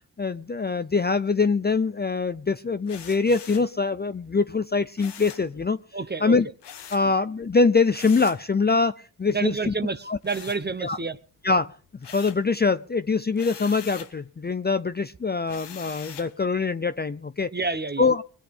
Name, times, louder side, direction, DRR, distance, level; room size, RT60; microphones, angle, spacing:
voice 1, 0.2-5.8 6.2-6.5 6.9-9.7 10.1-10.2 10.8-11.0 11.4-11.7 12.1-17.5 18.0-18.2, left 4 dB, 25° left, 0.6 m, -23 dB
sound 1, 2.9-3.7 5.0-5.5 6.6-7.1 7.9-8.5 10.2-11.1 11.5-12.5 13.3-14.2 15.5-16.4, left 8 dB, 75° left, 1.2 m, -43 dB
voice 2, 5.9-6.4 9.3-11.2 17.5-18.1, right 4 dB, 25° right, 1.1 m, -29 dB
20.5 x 8.5 x 5.3 m
cardioid pair, 50°, 42 cm